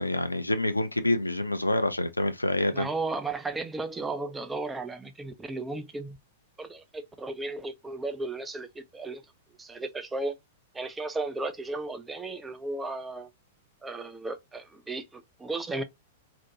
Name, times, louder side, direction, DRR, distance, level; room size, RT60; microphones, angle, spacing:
voice 1, 0.0-2.9, left 1 dB, 85° left, 0.3 m, -27 dB
voice 2, 2.7-6.2 6.6-9.2 9.6-10.4 10.7-13.3 13.8-15.8, right 3 dB, 10° right, 0.4 m, -35 dB
2.5 x 2.1 x 2.7 m
figure-of-eight pair, 100°, 0 cm